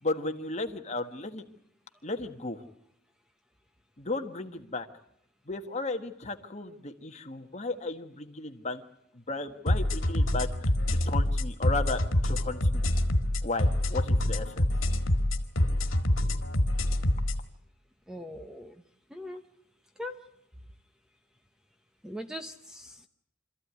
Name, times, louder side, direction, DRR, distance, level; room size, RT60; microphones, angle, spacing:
voice 1, 0.0-1.4 2.0-2.6 4.0-4.9 5.5-8.8 9.1-12.8 13.4-14.7, left 3 dB, 35° left, 6 dB, 1.5 m, -35 dB
sound 1, 9.7-17.4, left 1 dB, 75° left, 2.0 m, -26 dB
voice 2, 18.1-18.8 19.1-19.4 20.0-20.1 22.0-23.1, left 1 dB, 5° right, 7 dB, 0.9 m, -40 dB
26.0 x 14.5 x 9.5 m, 0.77 s
head